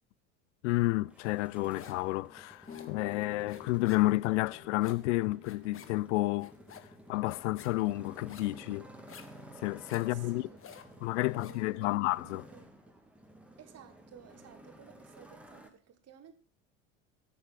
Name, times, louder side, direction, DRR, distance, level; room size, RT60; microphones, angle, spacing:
voice 1, 0.6-6.5 7.1-8.9 9.6-10.4 11.0-12.4, left 20 dB, 75° left, 0.6 m, -30 dB
Motorcycle, 1.0-15.7, right 1 dB, 5° right, 2.1 m, -53 dB
sound 1, 1.2-2.1 2.4-11.7, left 8 dB, 35° left, 1.4 m, -54 dB
sound 2, 2.7-8.4, left 10 dB, 20° left, 2.2 m, -52 dB
voice 2, 10.0-13.0 13.6-16.3, right 8 dB, 45° right, 2.3 m, -56 dB
12.0 x 7.0 x 5.8 m
hypercardioid pair, 75°, 37 cm